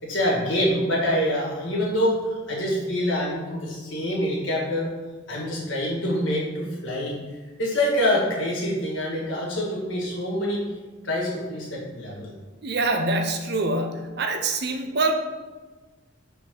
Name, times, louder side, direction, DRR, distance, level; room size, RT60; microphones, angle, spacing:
voice 1, 0.0-4.9 5.3-7.1 7.6-10.6 11.0-12.3, equal, 70° left, -4 dB, 1.8 m, -25 dB
voice 2, 12.6-15.2, right 2 dB, 55° right, 5 dB, 0.6 m, -25 dB
6.0 x 4.2 x 3.8 m, 1.3 s
head